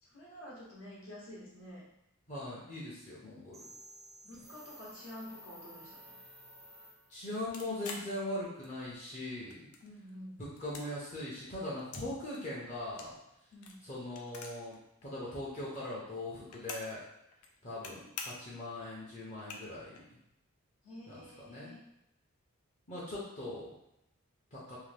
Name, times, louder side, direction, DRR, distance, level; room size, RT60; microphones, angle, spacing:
voice 1, 0.0-1.8 4.2-6.1 9.8-10.4 13.5-13.8 20.8-21.8, left 1 dB, 70° left, -6 dB, 0.9 m, -49 dB
voice 2, 2.3-3.7 7.1-9.7 10.4-13.2 13.8-14.7 15.0-17.0 17.6-20.2 21.1-21.7 22.9-23.7 24.5-24.8, left 1 dB, 35° left, -6 dB, 0.6 m, -40 dB
sound 1, 3.5-7.4, equal, 15° right, 0.4 m, -53 dB
sound 2, 7.5-9.0 9.3-10.1 10.4-12.1 12.3-14.8 15.0-15.1 15.3-17.0 17.3-17.9 18.2-18.6 19.0-19.1 19.3-20.0, left 4 dB, 85° left, 0.4 m, -46 dB
2.7 x 2.1 x 3.2 m, 0.85 s
head